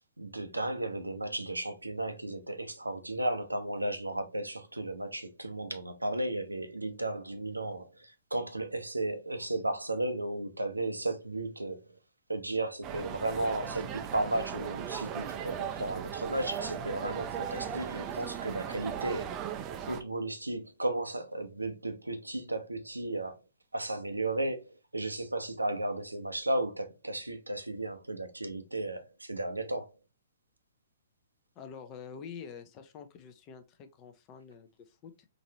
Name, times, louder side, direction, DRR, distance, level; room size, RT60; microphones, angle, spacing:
voice 1, 0.2-11.8 12.3-19.3 19.9-23.4 23.7-24.6 24.9-29.9, right 2 dB, 90° right, 0.6 m, -34 dB
sound 1, 12.8-20.0, right 8 dB, 30° right, 0.4 m, -37 dB
voice 2, 31.6-35.3, left 6 dB, 30° left, 0.6 m, -47 dB
3.9 x 2.6 x 2.8 m
figure-of-eight pair, 120°, 0 cm